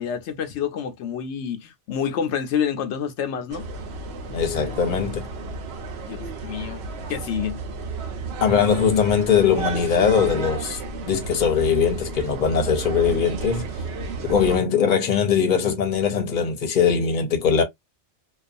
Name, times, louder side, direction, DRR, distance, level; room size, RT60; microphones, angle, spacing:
voice 1, 0.0-3.6 6.1-6.8 7.1-7.6, left 8 dB, 80° left, 0.9 m, -28 dB
sound 1, 3.5-14.6, right 4 dB, 65° right, 0.9 m, -32 dB
voice 2, 4.3-5.2 8.4-13.7 14.2-17.6, left 7 dB, 45° left, 0.8 m, -21 dB
2.5 x 2.3 x 2.5 m
omnidirectional pair, 1.2 m